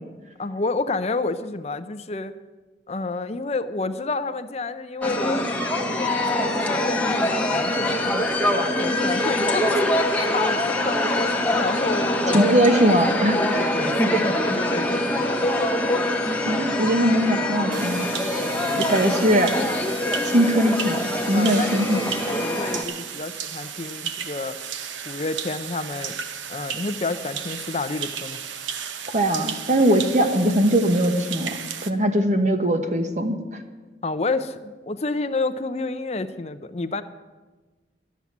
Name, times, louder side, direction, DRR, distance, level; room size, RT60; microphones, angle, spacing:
voice 1, 0.4-2.3 2.9-8.3 8.7-9.8 10.3-11.1 11.6-12.6 13.3-15.5 18.6-18.9 21.3-21.9 22.2-24.6 25.0-26.2 26.5-28.4 34.0-37.0, left 3 dB, 35° left, 11 dB, 0.5 m, -29 dB
sound 1, 5.0-22.8, left 1 dB, 10° left, 1.0 m, -24 dB
voice 2, 12.3-13.4 16.4-18.1 18.8-19.8 20.3-22.1 29.1-31.6 31.8-33.4, equal, 40° right, 6 dB, 1.2 m, -21 dB
sound 2, 17.7-31.9, right 8 dB, 85° right, 0.8 m, -34 dB
12.5 x 7.3 x 9.3 m, 1.3 s
head